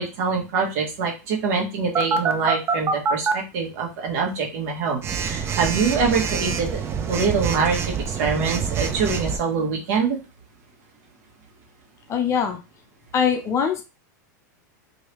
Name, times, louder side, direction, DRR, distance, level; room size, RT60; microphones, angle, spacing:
voice 1, 0.0-10.2, right 5 dB, 60° right, 0 dB, 1.2 m, -24 dB
Telephone, 1.9-3.3 5.0-9.4, right 6 dB, 25° right, 0.5 m, -25 dB
voice 2, 12.1-12.6 13.1-13.8, left 7 dB, 30° left, 5 dB, 0.6 m, -22 dB
3.2 x 2.7 x 3.0 m, 0.30 s
supercardioid pair, 125°, 10 cm